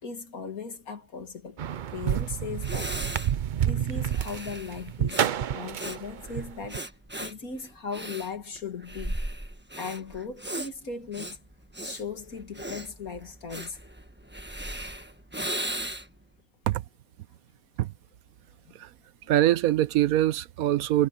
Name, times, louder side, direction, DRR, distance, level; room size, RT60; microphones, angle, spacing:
voice 1, 0.0-1.6 1.9-3.0 3.6-6.9 7.2-9.2 9.8-11.4 11.8-13.8 18.6-18.7 19.2-19.3, left 5 dB, 85° left, 2.8 m, -38 dB
sound 1, 1.6-6.8, right 9 dB, 65° right, 0.5 m, -29 dB
Breathing, 2.2-2.3 2.6-16.2, right 1 dB, 10° right, 1.3 m, -37 dB
voice 2, 19.3-21.1, right 13 dB, 85° right, 1.1 m, -23 dB
omnidirectional pair, 1.5 m